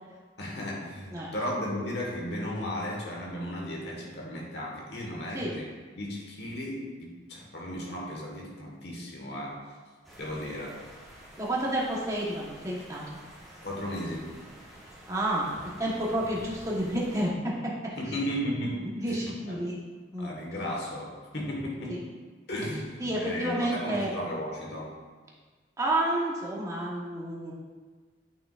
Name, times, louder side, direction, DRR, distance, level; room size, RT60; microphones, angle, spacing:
voice 1, 0.4-5.7 6.0-9.7 10.2-10.8 13.6-14.3 18.0-19.7 20.2-22.0 22.5-25.0, equal, 60° left, -2 dB, 1.5 m, -35 dB
sound 1, 10.0-17.3, equal, ahead, 1.4 m, -49 dB
voice 2, 11.4-13.2 15.1-17.5 18.1-18.2 18.9-19.8 20.1-20.3 21.9-22.0 23.0-24.1 25.8-27.5, right 1 dB, 15° right, -4 dB, 1.2 m, -30 dB
8.7 x 6.0 x 2.5 m, 1.4 s
head